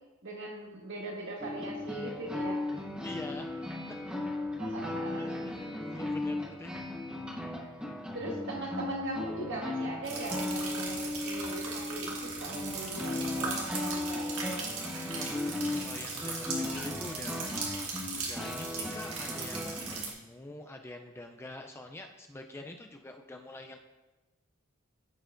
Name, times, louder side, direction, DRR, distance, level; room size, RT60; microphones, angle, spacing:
voice 1, 0.2-2.6 4.6-5.7 8.1-14.4, right 2 dB, 55° right, 0 dB, 1.4 m, -40 dB
sound 1, 1.4-20.0, left 2 dB, 5° right, 0.8 m, -37 dB
voice 2, 3.0-3.5 5.1-6.8 15.2-17.4 18.2-23.8, left 1 dB, 10° left, 4 dB, 0.3 m, -45 dB
sound 2, 10.0-20.1, right 4 dB, 85° right, 1.5 m, -38 dB
13.5 x 4.6 x 2.5 m, 1.1 s
head